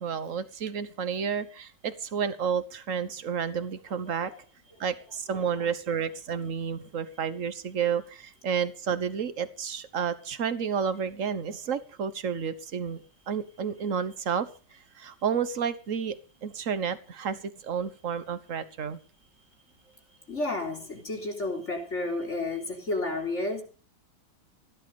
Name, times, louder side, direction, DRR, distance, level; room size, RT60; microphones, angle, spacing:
voice 1, 0.0-4.3 4.8-13.0 13.3-16.2 16.4-19.0, right 7 dB, 45° right, 13 dB, 1.4 m, -31 dB
voice 2, 20.3-23.6, left 2 dB, 35° left, 1 dB, 4.0 m, -31 dB
16.5 x 12.0 x 5.4 m, 0.38 s
omnidirectional pair, 2.0 m